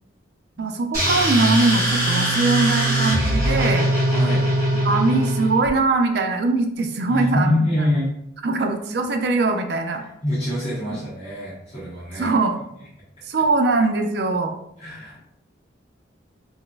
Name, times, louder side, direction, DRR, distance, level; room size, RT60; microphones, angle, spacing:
voice 1, 0.6-3.9 4.8-7.9 8.4-10.0 10.9-11.0 12.1-12.6 13.3-14.5, right 3 dB, 55° right, 5 dB, 0.4 m, -21 dB
sound 1, 0.9-5.7, right 1 dB, 15° right, 1.2 m, -21 dB
voice 2, 4.1-4.5 7.1-8.1 10.2-12.3 14.8-15.2, left 1 dB, 30° left, -11 dB, 1.1 m, -24 dB
3.8 x 2.6 x 2.3 m, 0.80 s
head